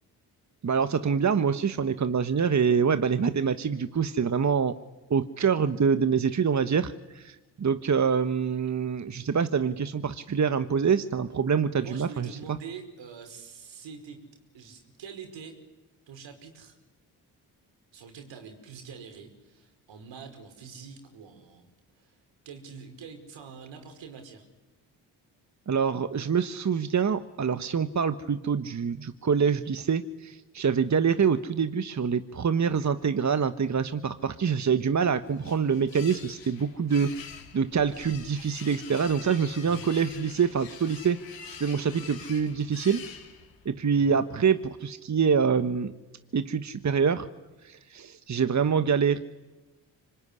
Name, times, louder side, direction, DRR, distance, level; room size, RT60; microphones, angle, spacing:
voice 1, 0.6-4.8 5.1-12.3 25.7-41.2 41.6-43.0 43.6-45.9 46.3-47.3 47.6-49.2, right 6 dB, 40° right, 11 dB, 1.4 m, -25 dB
voice 2, 11.8-14.2 14.5-15.6 16.1-16.7 17.9-21.7 22.0-22.2 22.4-24.4 39.6-39.9 43.9-44.2, right 6 dB, 75° right, 6 dB, 5.0 m, -45 dB
sound 1, 34.8-43.7, left 7 dB, 75° left, 4.8 m, -46 dB
25.5 x 22.0 x 9.9 m, 1.1 s
hypercardioid pair, 45°, 45 cm